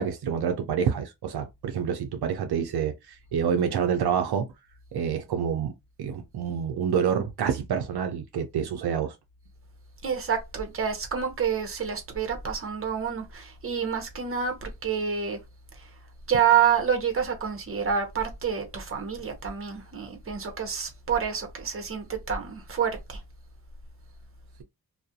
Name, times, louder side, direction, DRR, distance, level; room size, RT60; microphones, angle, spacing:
voice 1, 0.0-4.5 4.9-5.7 6.0-9.1, right 7 dB, 75° right, 0.5 m, -27 dB
voice 2, 10.0-15.4 15.7-15.9 16.3-23.2, right 7 dB, 35° right, 0.8 m, -28 dB
2.4 x 2.1 x 2.7 m
wide cardioid pair, 90°, 39 cm